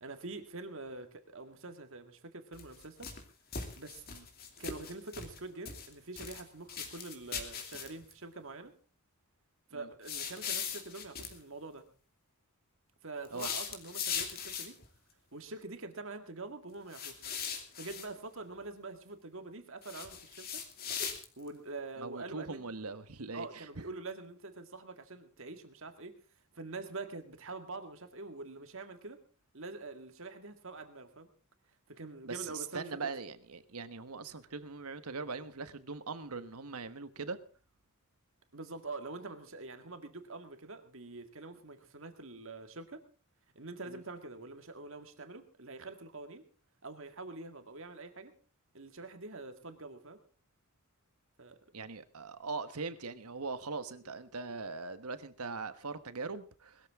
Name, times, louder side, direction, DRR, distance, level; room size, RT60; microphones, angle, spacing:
voice 1, 0.0-3.1 3.8-4.0 4.6-8.7 9.7-11.8 13.0-14.8 15.3-17.2 17.8-20.6 21.4-22.6 23.3-26.2 26.5-29.2 29.5-31.3 31.9-33.1 38.5-43.0 43.6-46.4 46.8-48.3 48.7-50.2 51.4-51.6, right 3 dB, 60° right, 7 dB, 2.0 m, -45 dB
sound 1, 2.5-3.2 3.5-5.4 5.6-6.4 6.7-8.1 10.0-11.3 13.2-14.8 16.9-18.1 19.8-21.5, left 6 dB, 45° left, 2.7 m, -39 dB
voice 2, 22.0-23.9 32.3-37.4 43.9-44.0 51.7-56.9, right 4 dB, 80° right, 12 dB, 1.3 m, -41 dB
21.0 x 13.5 x 3.7 m, 0.37 s
head